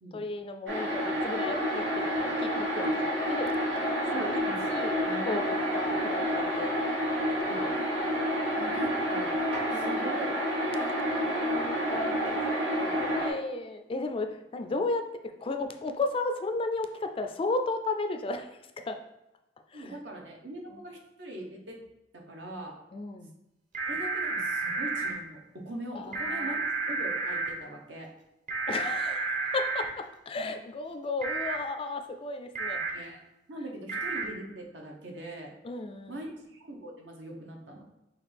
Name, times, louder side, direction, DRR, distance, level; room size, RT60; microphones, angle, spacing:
voice 1, 0.1-4.4 4.7-4.9 5.3-6.8 7.2-7.3 7.6-7.7 9.7-10.2 11.4-12.4 13.1-15.1 15.4-18.5 18.8-19.0 19.7-19.9 20.7-20.8 22.9-23.3 25.9-26.5 28.7-32.8 35.6-36.2, left 3 dB, 30° left, 6 dB, 0.3 m, -34 dB
sound 1, 0.7-13.3, equal, 90° right, 1.4 m, -29 dB
voice 2, 4.1-4.6 5.0-5.4 7.4-7.7 8.6-9.4 9.7-11.3 11.9-12.0 12.4-12.5 12.7-13.3 19.7-21.8 22.1-22.7 23.8-26.6 26.8-28.1 30.4-30.5 32.9-33.2 33.5-35.5 36.1-37.8, right 1 dB, 75° right, 1 dB, 0.9 m, -42 dB
sound 2, 23.7-25.1 26.1-27.5 28.5-29.8 31.2-31.6 32.6-32.9 33.9-34.2, right 3 dB, 45° right, 0.8 m, -31 dB
5.8 x 2.4 x 3.3 m, 0.92 s
head